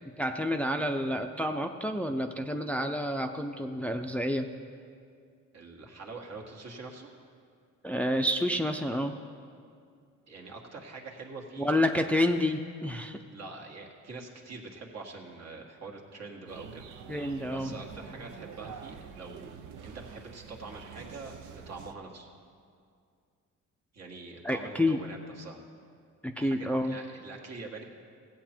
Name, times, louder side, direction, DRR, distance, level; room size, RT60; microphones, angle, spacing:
voice 1, 0.1-4.5 7.8-9.2 11.6-13.2 17.1-17.7 24.4-25.0 26.2-27.0, left 1 dB, 5° left, 5 dB, 0.5 m, -29 dB
voice 2, 5.5-7.1 10.3-11.8 13.3-16.9 17.5-19.5 19.8-22.3 23.9-25.6 26.4-27.8, right 3 dB, 60° right, 1 dB, 1.8 m, -44 dB
sound 1, 16.5-21.9, right 7 dB, 85° right, 0.7 m, -47 dB
16.0 x 8.0 x 4.4 m, 2.3 s
cardioid pair, 90°, 30 cm